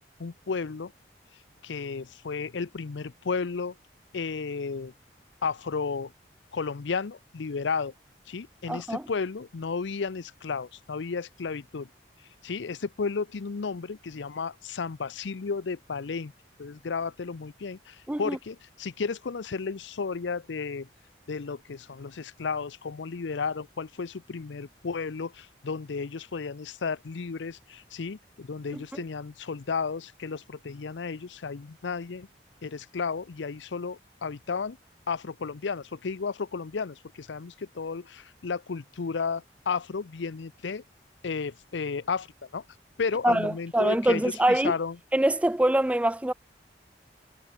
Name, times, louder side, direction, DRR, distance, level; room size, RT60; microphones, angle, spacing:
voice 1, 0.2-0.9 1.6-3.8 4.1-4.9 5.4-6.1 6.5-7.9 8.3-11.9 12.4-16.3 16.6-20.9 21.3-32.3 32.6-34.8 35.1-40.8 41.2-42.6 43.0-45.0, left 5 dB, 85° left, 0.6 m, -33 dB
voice 2, 8.7-9.0 18.1-18.4 28.7-29.0 43.2-44.7 45.1-46.3, right 1 dB, 5° right, 0.3 m, -24 dB
head